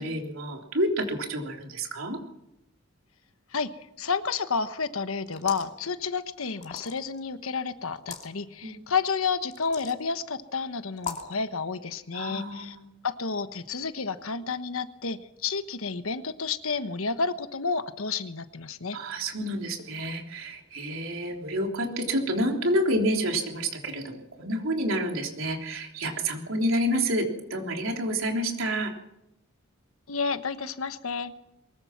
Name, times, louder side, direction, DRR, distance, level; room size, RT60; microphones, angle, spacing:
voice 1, 0.0-2.2 8.6-8.8 12.1-12.9 18.9-28.9, right 1 dB, 75° right, 2 dB, 3.5 m, -29 dB
voice 2, 3.5-12.8 13.0-19.0 30.1-31.3, left 5 dB, 85° left, 11 dB, 1.2 m, -30 dB
sound 1, 5.3-5.8 6.6-7.2 8.0-8.3 9.5-10.0 11.0-11.3, left 6 dB, 35° left, 2.4 m, -38 dB
23.0 x 20.5 x 5.9 m, 0.84 s
head